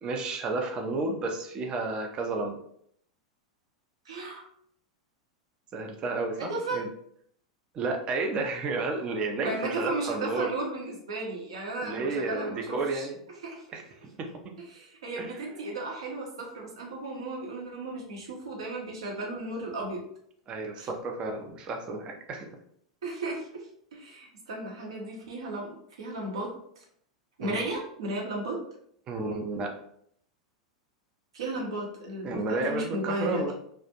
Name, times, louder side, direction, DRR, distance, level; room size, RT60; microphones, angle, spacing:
voice 1, 0.0-2.6 5.7-6.9 7.7-10.6 11.8-13.2 13.7-13.8 14.2-14.6 15.2-15.3 20.5-22.6 27.4-27.6 29.1-29.7 32.2-33.5, right 3 dB, 30° right, 3 dB, 0.4 m, -31 dB
voice 2, 4.0-4.4 6.4-6.8 9.4-13.1 13.4-13.6 14.7-20.0 20.8-20.9 23.0-26.5 27.4-28.6 31.3-33.5, right 2 dB, 65° right, -1 dB, 0.7 m, -35 dB
2.3 x 2.0 x 2.8 m, 0.68 s
figure-of-eight pair, 90°, 3 cm